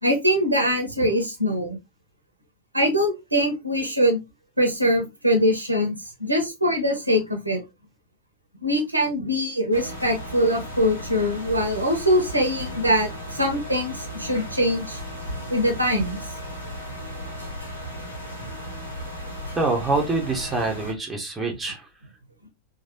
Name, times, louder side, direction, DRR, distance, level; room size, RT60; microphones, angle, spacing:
voice 1, 0.0-1.8 2.7-4.2 4.6-7.6 8.6-15.0 15.5-16.2, equal, 85° right, 4 dB, 0.8 m, -23 dB
sound 1, 9.7-20.9, equal, 80° left, 1.0 m, -35 dB
voice 2, 19.5-21.8, right 3 dB, 10° right, 2 dB, 0.9 m, -25 dB
3.1 x 2.3 x 2.7 m, 0.22 s
figure-of-eight pair, 90°, 0 cm